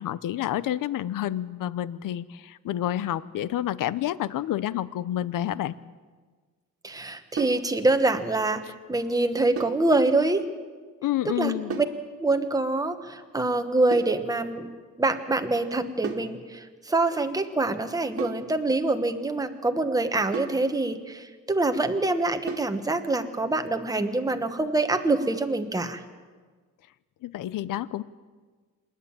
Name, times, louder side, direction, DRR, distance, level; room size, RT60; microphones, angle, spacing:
voice 1, 0.0-5.7 11.0-11.8 27.2-28.0, left 12 dB, 90° left, 17 dB, 0.7 m, -29 dB
voice 2, 6.8-8.6 8.9-10.4 11.4-11.8 12.2-14.7 15.0-26.0, right 2 dB, 10° right, 6 dB, 1.3 m, -25 dB
sound 1, 7.4-7.7 9.6-9.9 11.7-12.0 13.9-14.2 16.0-16.3 18.2-18.5 20.3-20.7 22.5-22.8, right 5 dB, 45° right, 1.9 m, -34 dB
27.0 x 11.0 x 8.8 m, 1.5 s
wide cardioid pair, 145°, 31 cm